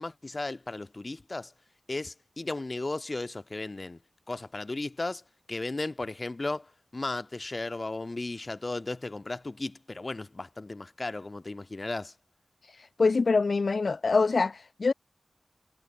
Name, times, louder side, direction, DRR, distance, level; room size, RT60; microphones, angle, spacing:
voice 1, 0.0-1.5 1.9-4.0 4.3-5.2 5.5-12.1, left 2 dB, 35° left, 4.8 m, -35 dB
voice 2, 12.7-14.9, left 4 dB, 55° left, 1.2 m, -25 dB
wide cardioid pair, 85°, 0 cm